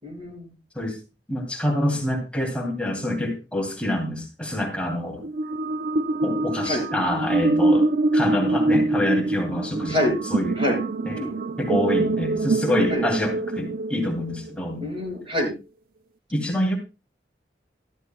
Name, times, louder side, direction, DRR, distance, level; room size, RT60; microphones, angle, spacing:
voice 1, 0.0-0.5 6.6-6.8 9.9-10.2 10.6-10.8 11.1-11.3 12.9-13.0 14.8-15.5, equal, 30° right, 0 dB, 6.9 m, -26 dB
voice 2, 1.3-5.2 6.2-7.9 8.1-10.6 11.1-11.2 11.6-14.8 16.3-16.8, left 1 dB, 5° left, 1 dB, 2.8 m, -26 dB
sound 1, 5.2-14.6, right 2 dB, 55° right, 0.4 m, -24 dB
13.5 x 13.5 x 2.3 m, 0.28 s
head